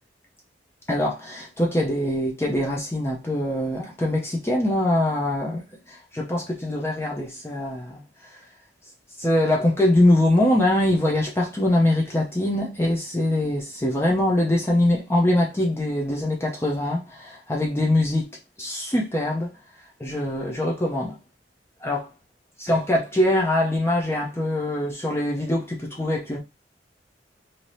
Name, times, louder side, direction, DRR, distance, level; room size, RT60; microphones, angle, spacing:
voice 1, 0.9-5.6 5.9-8.0 9.2-18.2 18.6-19.5 20.0-21.2 21.8-22.1 22.6-26.4, left 1 dB, 15° left, 0.6 m, -23 dB
2.8 x 2.7 x 3.2 m
head